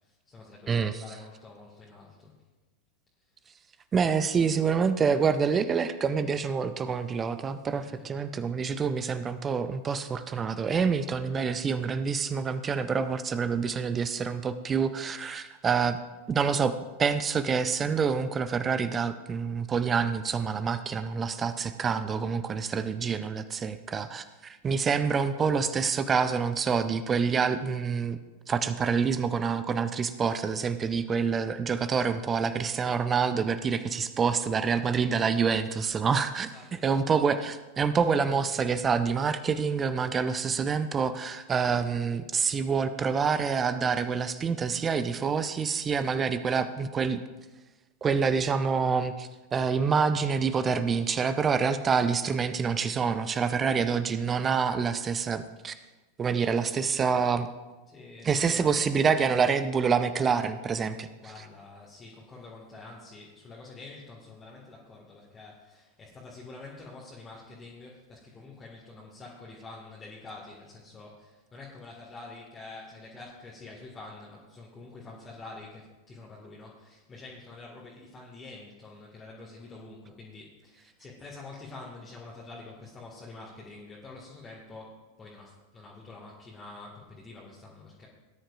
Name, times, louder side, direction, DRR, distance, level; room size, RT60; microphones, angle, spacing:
voice 1, 0.0-2.4 3.2-3.3 7.7-8.2 36.4-37.0 57.9-58.9 61.0-88.1, left 3 dB, 20° left, -4 dB, 1.9 m, -47 dB
voice 2, 0.7-1.0 3.9-16.0 16.3-28.2 28.5-36.5 36.8-47.2 48.0-55.7 56.2-57.5 58.2-61.1, right 6 dB, 20° right, 12 dB, 0.5 m, -27 dB
18.5 x 10.0 x 2.5 m, 1.2 s
figure-of-eight pair, 90°, 0 cm